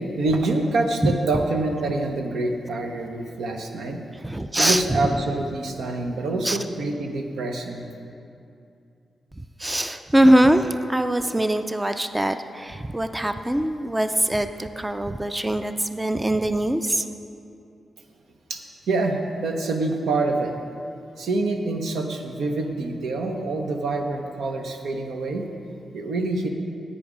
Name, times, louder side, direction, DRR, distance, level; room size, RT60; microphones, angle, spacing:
voice 1, 0.2-4.0 4.6-7.8 18.5-18.6 18.9-20.5 21.2-25.4 25.9-26.5, right 2 dB, 85° right, 3 dB, 0.9 m, -26 dB
voice 2, 4.2-5.2 6.4-6.6 9.4-17.0, right 1 dB, 15° right, 9 dB, 0.4 m, -22 dB
10.0 x 8.6 x 5.0 m, 2.6 s
cardioid pair, 75°, 0 cm